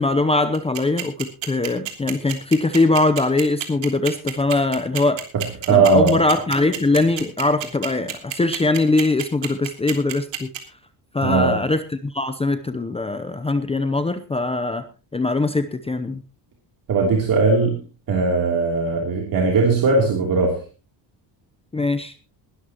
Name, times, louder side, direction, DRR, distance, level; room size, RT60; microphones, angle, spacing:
voice 1, 0.0-5.2 5.7-10.5 11.1-14.9 15.1-16.2 21.7-22.1, left 2 dB, 15° left, 10 dB, 0.7 m, -21 dB
sound 1, 0.5-10.6, right 14 dB, 80° right, 3.2 m, -28 dB
voice 2, 5.3-6.2 11.2-11.6 16.9-17.8 18.1-20.6, right 3 dB, 50° right, 0 dB, 3.2 m, -19 dB
20.5 x 13.0 x 3.0 m, 0.35 s
cardioid pair, 160°, 44 cm